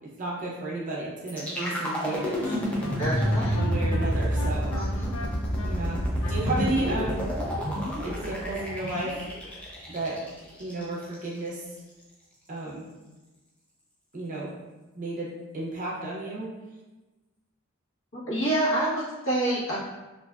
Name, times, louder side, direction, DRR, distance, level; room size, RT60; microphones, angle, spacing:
voice 1, 0.0-2.9 3.5-4.7 5.6-6.0 6.3-7.2 8.0-9.2 9.9-10.2 10.6-11.6 12.5-12.8 14.1-14.5 15.0-16.5, right 2 dB, 40° right, -4 dB, 0.6 m, -33 dB
Wind instrument woodwind instrument, 1.3-6.9, left 2 dB, 80° left, 0.4 m, -40 dB
sound 1, 1.3-11.3, equal, 5° left, 0.4 m, -28 dB
voice 2, 1.5-2.0 3.0-3.6 4.7-5.1 18.1-19.8, right 1 dB, 65° left, -9 dB, 1.0 m, -28 dB
2.5 x 2.2 x 2.3 m, 1.1 s
head